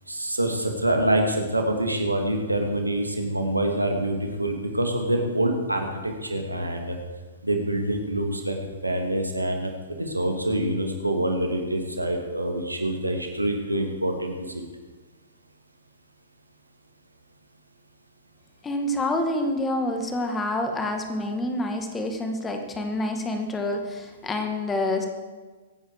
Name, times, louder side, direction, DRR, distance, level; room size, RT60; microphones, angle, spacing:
voice 1, 0.1-7.0 7.4-8.6 8.8-9.7 10.0-14.6, right 1 dB, 85° right, 3 dB, 2.6 m, -26 dB
voice 2, 18.6-25.1, left 1 dB, 15° left, 4 dB, 2.2 m, -27 dB
24.0 x 9.4 x 4.9 m, 1.4 s
figure-of-eight pair, 110°, 0 cm